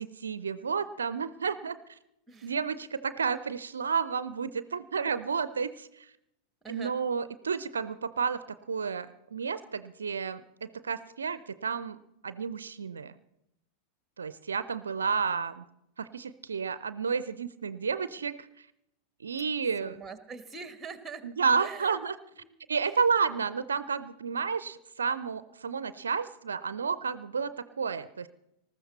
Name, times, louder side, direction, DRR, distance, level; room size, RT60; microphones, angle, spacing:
voice 1, 0.0-2.0 2.4-6.1 6.7-8.4 8.7-12.0 12.2-13.1 14.2-15.6 16.0-18.5 19.2-20.0 21.2-22.1 22.7-28.3, right 5 dB, 70° right, 15 dB, 0.5 m, -31 dB
voice 2, 6.6-7.0 19.8-21.2 21.6-22.0 22.4-22.5, right 5 dB, 10° right, 11 dB, 1.3 m, -43 dB
19.5 x 14.0 x 4.2 m, 0.83 s
figure-of-eight pair, 90°, 0 cm